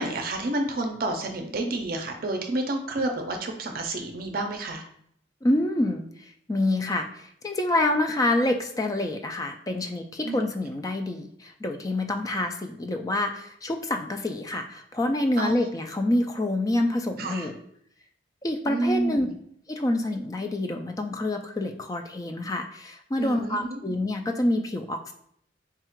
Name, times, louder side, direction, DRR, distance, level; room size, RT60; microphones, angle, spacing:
voice 1, 0.0-4.8 10.2-10.4 12.3-12.4 15.4-15.5 17.2-17.5 18.7-19.3 23.2-23.8, right 2 dB, 55° right, 3 dB, 0.5 m, -29 dB
voice 2, 5.4-6.0 6.5-17.5 18.4-19.3 19.7-25.1, left 1 dB, 20° left, 5 dB, 0.4 m, -27 dB
3.6 x 2.4 x 4.4 m, 0.68 s
head